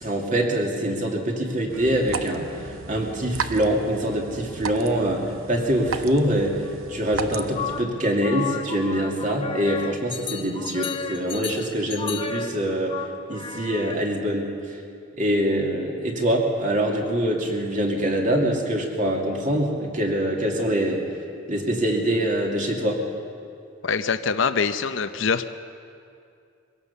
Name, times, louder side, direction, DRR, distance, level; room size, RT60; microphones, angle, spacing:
voice 1, 0.0-6.6 6.9-12.9 13.3-14.5 15.2-21.0 21.5-23.0, right 1 dB, 35° right, 1 dB, 2.5 m, -24 dB
sound 1, 1.7-7.8, right 5 dB, 70° right, 0.9 m, -35 dB
sound 2, 7.3-14.0, left 6 dB, 25° left, 0.9 m, -33 dB
voice 2, 23.8-25.5, left 5 dB, 60° left, 10 dB, 0.7 m, -24 dB
22.5 x 17.0 x 7.0 m, 2.5 s
head